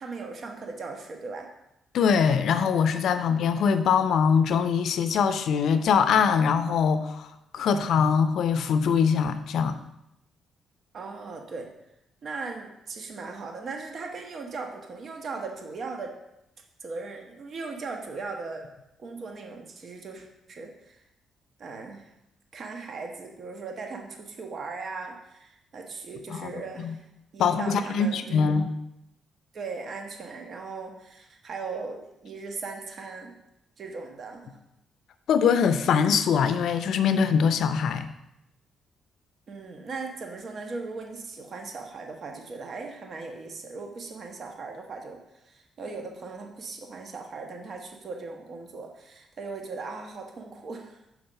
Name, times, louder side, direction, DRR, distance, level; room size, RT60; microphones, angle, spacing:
voice 1, 0.0-1.5 10.9-11.7 12.2-16.1 16.8-18.7 19.0-21.0 21.6-22.1 22.5-27.0 27.3-28.6 29.5-33.4 33.8-34.6 39.5-45.2 45.5-51.0, right 4 dB, 50° right, 2 dB, 1.2 m, -38 dB
voice 2, 1.9-9.8 26.3-26.5 26.8-26.9 27.4-28.7 35.3-38.1, left 6 dB, 70° left, 10 dB, 0.6 m, -23 dB
5.8 x 4.8 x 6.6 m, 0.85 s
cardioid pair, 90°, 0 cm